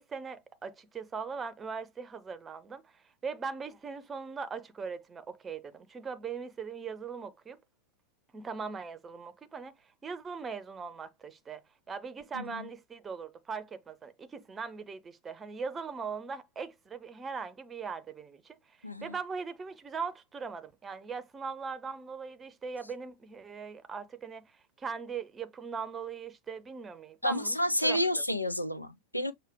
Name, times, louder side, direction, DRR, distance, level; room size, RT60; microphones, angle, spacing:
voice 1, 0.0-7.6 8.3-27.6 27.8-28.2, right 5 dB, 20° right, 0.7 m, -40 dB
voice 2, 12.3-12.6 18.8-19.1 27.2-29.3, left 1 dB, 85° left, 0.6 m, -30 dB
6.5 x 2.2 x 3.4 m
figure-of-eight pair, 90°, 0 cm